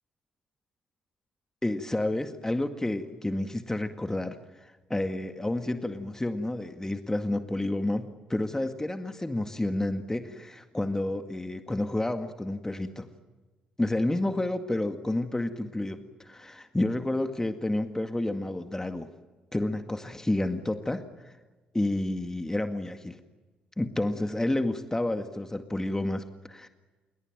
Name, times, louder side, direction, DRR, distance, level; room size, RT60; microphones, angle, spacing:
voice 1, 1.6-13.1 13.8-19.1 19.5-21.3 21.7-23.2 23.8-26.7, left 1 dB, 15° left, 7 dB, 2.0 m, -30 dB
28.5 x 22.5 x 9.1 m, 1.3 s
hypercardioid pair, 45°, 4 cm